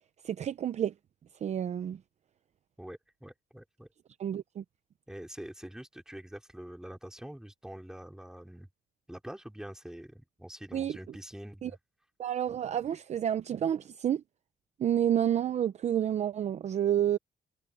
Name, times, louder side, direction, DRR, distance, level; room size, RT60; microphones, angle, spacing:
voice 1, 0.2-0.9 1.4-2.0 4.2-4.6 10.7-11.0 11.6-11.7 12.2-14.2 14.8-17.2, right 10 dB, 45° right, 0.6 m, -29 dB
voice 2, 2.8-3.9 5.1-8.7 9.1-11.8, right 1 dB, 5° right, 4.0 m, -45 dB
cardioid pair, 150°, 16 cm